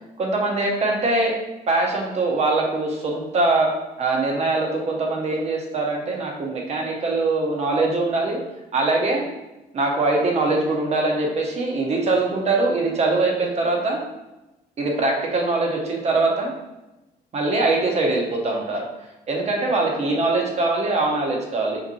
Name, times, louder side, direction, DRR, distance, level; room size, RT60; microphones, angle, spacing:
voice 1, 0.2-1.4 1.7-8.4 8.7-9.2 9.7-14.0 14.8-16.5 17.3-18.9 19.3-21.8, right 2 dB, 40° right, 0 dB, 0.9 m, -22 dB
5.7 x 2.8 x 2.6 m, 0.99 s
cardioid pair, 110°, 17 cm